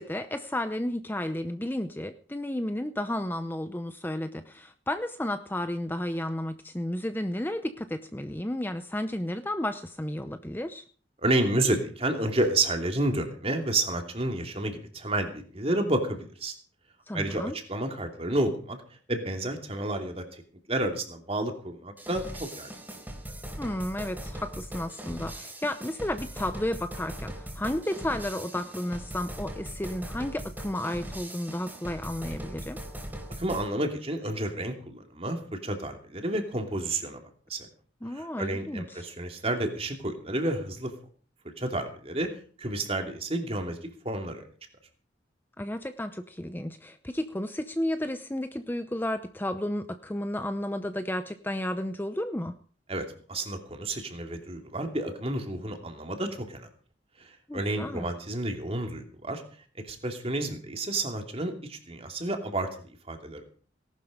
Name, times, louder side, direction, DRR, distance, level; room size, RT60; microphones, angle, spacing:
voice 1, 0.0-10.8 17.1-17.5 23.6-32.8 38.0-39.1 45.6-52.5 57.5-58.1, left 1 dB, 10° left, 9 dB, 0.7 m, -32 dB
voice 2, 11.2-16.5 17.1-18.8 19.1-20.4 20.7-22.7 33.4-37.7 38.1-40.9 41.6-42.3 42.6-44.4 52.9-56.7 57.2-59.4 59.7-63.4, right 1 dB, 30° right, 4 dB, 2.8 m, -30 dB
sound 1, 22.0-33.7, right 1 dB, 10° right, 3.6 m, -40 dB
18.5 x 12.0 x 5.1 m, 0.43 s
head